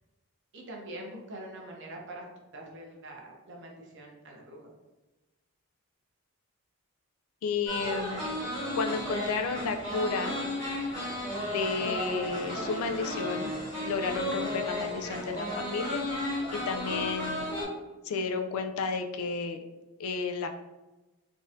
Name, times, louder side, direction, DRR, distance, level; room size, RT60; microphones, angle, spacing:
voice 1, 0.5-2.2 2.5-4.7, right 1 dB, 55° right, 0 dB, 0.7 m, -44 dB
voice 2, 7.4-8.2 8.7-10.4 11.4-13.5 13.8-17.5 18.0-19.6 20.0-20.5, left 4 dB, 70° left, 6 dB, 0.3 m, -32 dB
sound 1, 7.7-17.6, left 1 dB, 20° left, 1.2 m, -34 dB
3.7 x 2.6 x 2.5 m, 1.1 s
head